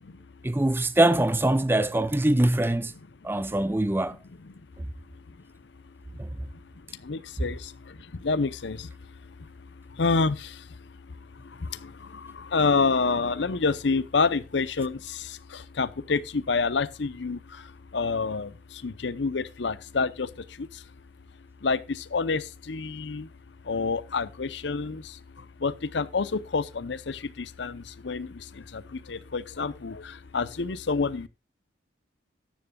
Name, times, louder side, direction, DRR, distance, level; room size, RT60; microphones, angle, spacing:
voice 1, 0.4-2.9 3.2-4.2 6.2-6.3, right 1 dB, 10° right, 0.5 m, -23 dB
voice 2, 7.1-7.6 8.2-8.8 10.0-10.4 12.5-15.0 15.8-17.4 17.9-18.5 18.8-20.3 21.6-21.8 22.1-23.3 23.7-25.0 25.6-27.2 27.6-28.3 29.1-30.0 30.3-31.3, left 4 dB, 65° left, 0.7 m, -27 dB
14.0 x 10.5 x 2.3 m
head